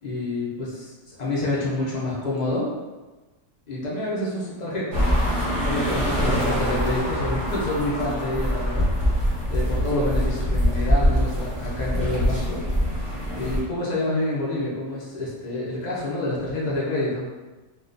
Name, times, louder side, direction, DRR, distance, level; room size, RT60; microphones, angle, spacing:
voice 1, 0.0-2.7 3.7-5.0 5.4-8.9 9.5-12.6 13.3-17.3, left 1 dB, 70° left, -6 dB, 0.4 m, -28 dB
sound 1, 4.9-13.6, equal, 25° right, 0.6 m, -24 dB
3.6 x 2.3 x 2.5 m, 1.2 s
omnidirectional pair, 1.8 m